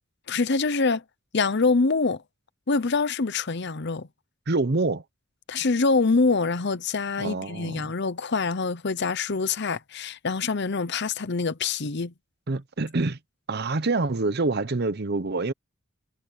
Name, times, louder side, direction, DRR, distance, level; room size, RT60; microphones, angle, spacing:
voice 1, 0.3-1.0 1.3-2.2 2.7-4.1 5.5-12.1, left 4 dB, 55° left, 0.8 m, -25 dB
voice 2, 4.5-5.0 7.2-7.9 12.5-13.2 13.5-15.5, right 3 dB, 50° right, 0.9 m, -26 dB
head